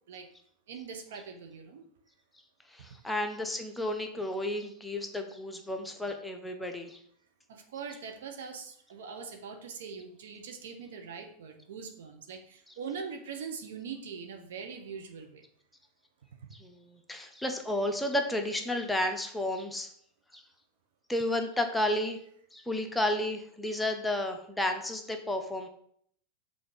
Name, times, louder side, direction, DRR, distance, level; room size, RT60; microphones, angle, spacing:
voice 1, 0.7-1.8 2.8-2.9 7.5-15.5, right 6 dB, 70° right, 4 dB, 1.1 m, -42 dB
voice 2, 2.7-7.0 16.6-19.9 20.3-20.4 21.1-22.2 22.5-25.7, left 1 dB, 5° left, 4 dB, 0.9 m, -32 dB
6.0 x 4.0 x 5.0 m, 0.65 s
figure-of-eight pair, 90°, 0 cm